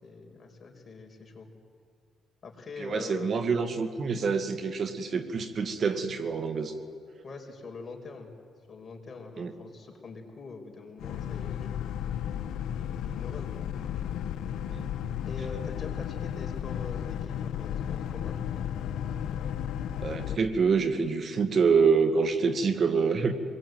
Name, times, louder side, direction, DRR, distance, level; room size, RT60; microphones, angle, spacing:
voice 1, 0.0-1.5 2.4-3.3 7.2-8.3 8.7-12.1 13.0-13.5 15.3-18.4, left 4 dB, 35° left, 3 dB, 4.9 m, -43 dB
voice 2, 2.8-6.8 9.4-9.5 14.7-14.9 20.0-23.3, right 5 dB, 50° right, 9 dB, 1.9 m, -26 dB
Boat Water vehicle, 11.0-20.4, left 9 dB, 80° left, 1.1 m, -34 dB
26.0 x 21.5 x 9.4 m, 2.4 s
cardioid pair, 90°, 0 cm